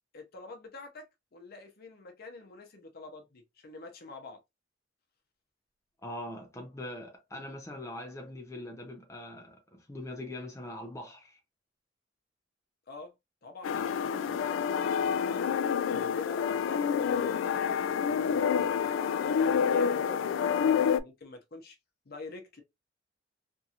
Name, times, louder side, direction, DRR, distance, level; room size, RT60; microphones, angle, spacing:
voice 1, 0.1-4.4 12.9-13.1 13.4-15.5 16.0-21.8 22.1-22.6, left 3 dB, 55° left, 0.7 m, -47 dB
voice 2, 6.0-11.4 13.7-13.9 15.9-16.1, left 1 dB, 15° left, 0.5 m, -42 dB
sound 1, 13.6-21.0, left 7 dB, 90° left, 0.3 m, -28 dB
2.8 x 2.6 x 2.3 m
head